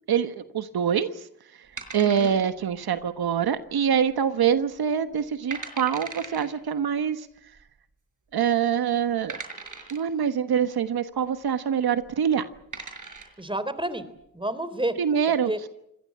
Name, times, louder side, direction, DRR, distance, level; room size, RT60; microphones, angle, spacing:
voice 1, 0.1-1.3 1.9-7.3 8.3-9.4 9.9-12.5 15.0-15.7, right 8 dB, 80° right, 10 dB, 1.3 m, -25 dB
sound 1, 1.8-2.7 3.0-3.1 3.7-4.1 4.5-4.6 5.1-5.2 5.5-6.5 7.6-7.7 8.3-8.4 9.3-10.1 11.9-12.1 12.5-13.4, right 4 dB, 55° right, 5.9 m, -39 dB
voice 2, 2.0-2.4 13.4-14.1 14.3-15.0 15.5-15.6, right 1 dB, 15° right, 14 dB, 3.8 m, -29 dB
25.0 x 18.5 x 8.7 m, 0.79 s
cardioid pair, 45°, 37 cm